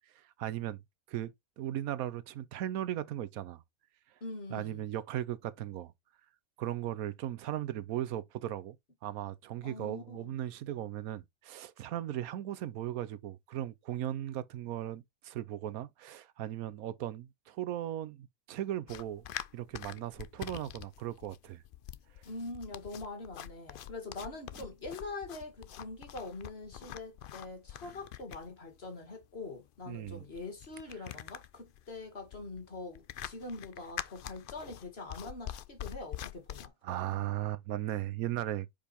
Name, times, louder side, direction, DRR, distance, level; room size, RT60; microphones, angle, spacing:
voice 1, 0.4-0.8 1.1-3.6 4.5-5.9 6.6-8.8 9.0-19.2 19.5-21.6 29.9-30.2 36.8-38.7, right 12 dB, 90° right, 1.1 m, -37 dB
voice 2, 4.2-4.8 9.6-10.3 22.3-36.7, left 3 dB, 45° left, 2.0 m, -44 dB
sound 1, 18.9-36.7, left 11 dB, 75° left, 0.5 m, -45 dB
5.2 x 5.1 x 4.1 m
omnidirectional pair, 1.5 m